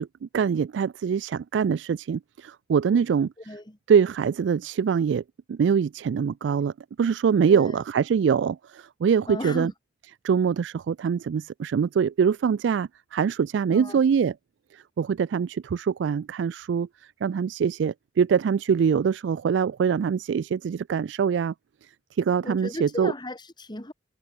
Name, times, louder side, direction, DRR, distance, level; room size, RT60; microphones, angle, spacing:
voice 1, 0.0-3.6 3.9-5.2 5.5-6.7 7.0-9.7 10.2-14.4 14.7-16.9 17.2-21.5 22.2-23.1, right 6 dB, 70° right, 0.3 m, -24 dB
voice 2, 3.5-3.8 7.5-7.7 9.3-9.7 13.7-14.0 22.4-23.9, left 1 dB, 25° left, 2.4 m, -35 dB
head